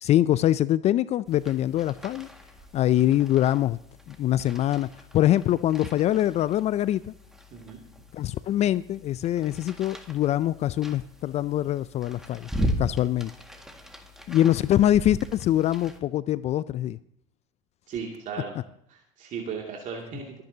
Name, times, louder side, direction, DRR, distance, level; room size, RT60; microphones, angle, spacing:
voice 1, 0.0-2.3 2.7-3.8 4.1-4.9 5.1-7.1 8.1-12.5 12.8-13.3 14.3-17.0, left 12 dB, 40° left, 0.4 m, -24 dB
sound 1, 1.2-16.0, equal, 5° right, 1.9 m, -38 dB
voice 2, 17.9-18.6 18.9-20.3, right 6 dB, 50° right, 2.5 m, -36 dB
28.0 x 9.5 x 2.8 m
hypercardioid pair, 85°, 17 cm